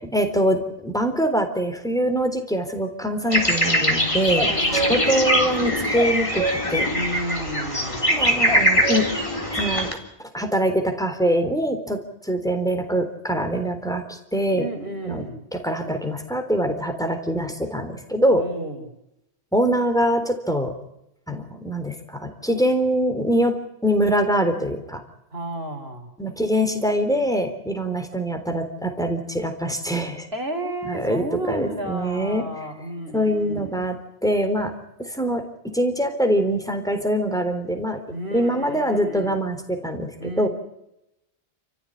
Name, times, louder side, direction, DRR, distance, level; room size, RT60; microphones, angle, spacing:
voice 1, 0.1-6.4 6.7-6.9 8.1-9.1 9.5-9.9 10.3-14.6 15.0-15.3 15.5-18.4 19.5-20.7 21.3-23.5 23.8-25.0 26.2-30.3 30.9-32.5 33.1-34.0 34.2-34.7 35.0-35.4 35.7-38.0 38.3-40.5, equal, 5° left, 6 dB, 3.7 m, -23 dB
sound 1, 3.3-9.9, equal, 30° left, 3.9 m, -22 dB
voice 2, 4.5-5.1 6.9-8.1 14.5-15.4 18.4-18.9 25.3-26.1 30.3-33.8 38.1-39.3 40.2-40.5, right 1 dB, 65° right, 6 dB, 4.3 m, -32 dB
29.5 x 15.0 x 10.0 m, 0.86 s
omnidirectional pair, 1.1 m